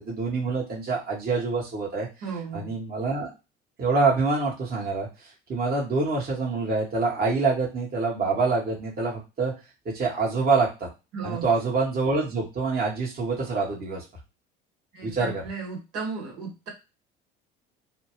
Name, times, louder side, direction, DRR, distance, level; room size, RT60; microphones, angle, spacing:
voice 1, 0.0-2.1 2.5-3.3 3.8-5.1 5.5-9.5 9.8-10.9 11.2-14.0 15.0-15.4, right 4 dB, 30° right, -3 dB, 1.3 m, -26 dB
voice 2, 2.2-2.7 11.1-11.5 14.9-16.7, right 5 dB, 65° right, -3 dB, 1.7 m, -35 dB
2.8 x 2.3 x 3.1 m, 0.28 s
figure-of-eight pair, 60°, 30 cm